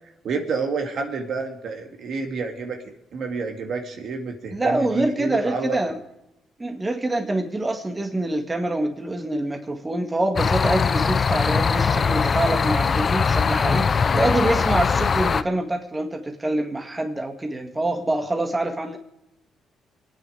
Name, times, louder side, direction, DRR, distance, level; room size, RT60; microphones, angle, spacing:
voice 1, 0.2-2.8 3.1-5.8, right 4 dB, 65° right, 3 dB, 2.1 m, -29 dB
voice 2, 4.5-6.0 6.6-19.0, right 1 dB, 20° right, 3 dB, 2.0 m, -25 dB
sound 1, 10.4-15.4, left 5 dB, 40° left, 0.6 m, -21 dB
25.5 x 9.1 x 5.0 m, 0.88 s
cardioid pair, 90°, 0 cm